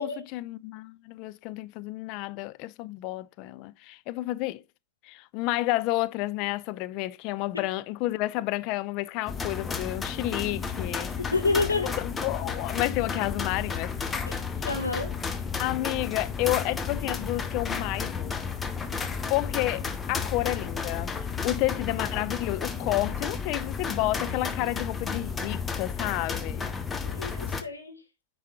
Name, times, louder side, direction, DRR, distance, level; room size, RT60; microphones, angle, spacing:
voice 1, 0.0-4.6 5.0-11.1 12.0-14.7 15.6-18.4 19.3-21.1 21.4-26.7, left 18 dB, 40° left, 0.4 m, -30 dB
sound 1, 9.3-27.6, left 5 dB, 15° left, 0.7 m, -32 dB
voice 2, 11.3-11.9 14.3-15.1 27.0-28.0, left 3 dB, 80° left, 1.5 m, -29 dB
9.3 x 4.7 x 2.7 m
figure-of-eight pair, 90°, 0 cm